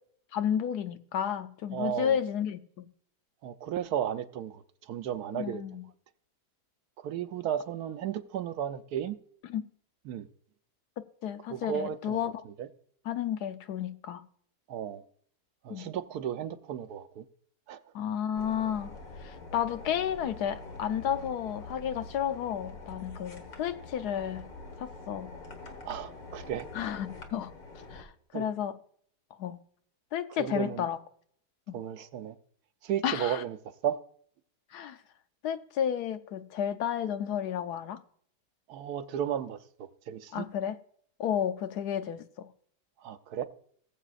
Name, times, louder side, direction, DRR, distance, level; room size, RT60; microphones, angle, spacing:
voice 1, 0.3-2.9 5.3-5.8 9.5-9.7 11.2-12.3 13.1-14.2 15.7-15.8 17.9-18.9 19.2-24.5 24.8-25.3 26.7-27.5 27.9-28.7 29.4-29.6 30.1-31.0 31.7-31.8 33.0-33.4 34.7-35.0 35.4-38.0 40.3-40.8 41.2-42.5, left 9 dB, 75° left, 1.2 m, -32 dB
voice 2, 1.7-2.2 3.4-5.6 7.0-9.1 10.1-10.3 11.5-12.2 12.6-12.7 14.7-15.0 15.6-17.3 17.7-17.8 25.9-26.7 28.3-28.4 30.4-30.9 31.7-32.4 32.8-33.6 33.8-34.0 38.7-40.5 43.0-43.5, right 9 dB, 70° right, 1.1 m, -34 dB
sound 1, 18.3-28.0, left 3 dB, 55° left, 1.8 m, -45 dB
19.0 x 7.5 x 2.4 m
omnidirectional pair, 1.8 m